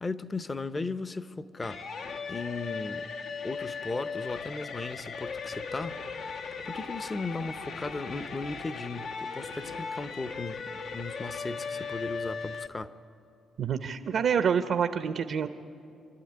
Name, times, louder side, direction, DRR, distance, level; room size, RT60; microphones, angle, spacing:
voice 1, 0.0-1.8 2.3-3.1 3.4-12.9, left 3 dB, 25° left, 13 dB, 0.8 m, -36 dB
sound 1, 1.6-12.7, left 5 dB, 75° left, 1.2 m, -38 dB
voice 2, 13.6-15.5, right 7 dB, 60° right, 9 dB, 0.8 m, -27 dB
27.0 x 12.5 x 9.6 m, 2.7 s
cardioid pair, 90°, 0 cm